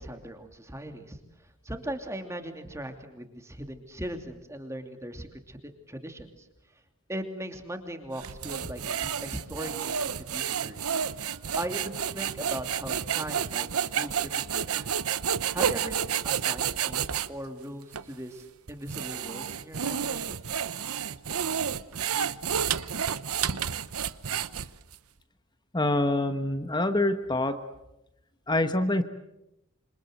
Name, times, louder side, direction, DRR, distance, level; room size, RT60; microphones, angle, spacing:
voice 1, 0.0-6.5 7.1-10.9 11.6-13.7 13.9-14.9 15.5-20.4, right 1 dB, 15° right, 6 dB, 2.7 m, -39 dB
sound 1, 8.2-17.3 17.9-18.0 18.7-24.9, right 8 dB, 80° right, 0.9 m, -30 dB
voice 2, 25.7-27.6 28.5-29.0, left 2 dB, 20° left, 9 dB, 1.2 m, -25 dB
27.0 x 26.0 x 7.8 m, 0.89 s
head